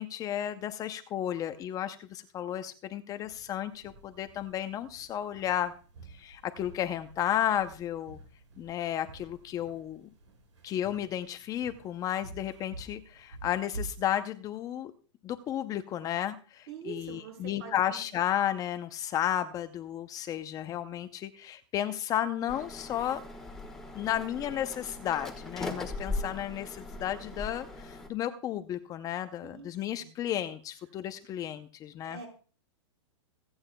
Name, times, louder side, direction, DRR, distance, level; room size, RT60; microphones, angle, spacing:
voice 1, 0.0-5.7 6.1-8.2 8.6-10.0 10.6-14.9 15.2-23.2 23.9-32.2, left 11 dB, 20° left, 10 dB, 0.6 m, -33 dB
sound 1, 3.1-14.1, right 2 dB, 80° right, 4.2 m, -49 dB
voice 2, 16.7-18.1 29.4-29.7 30.0-30.1 32.0-32.3, right 6 dB, 55° right, 3 dB, 6.4 m, -44 dB
sound 2, 22.5-28.1, left 2 dB, 5° left, 1.5 m, -39 dB
26.0 x 8.8 x 2.2 m, 0.39 s
hypercardioid pair, 145°, 16 cm